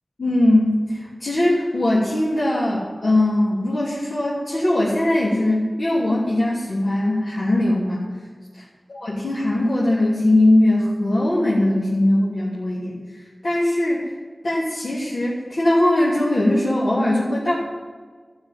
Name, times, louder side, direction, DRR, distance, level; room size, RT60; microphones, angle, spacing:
voice 1, 0.2-8.0 8.9-13.0 13.4-14.0 14.4-17.5, left 1 dB, 90° left, -8 dB, 3.1 m, -20 dB
12.5 x 8.5 x 9.3 m, 1.5 s
wide cardioid pair, 60°, 0 cm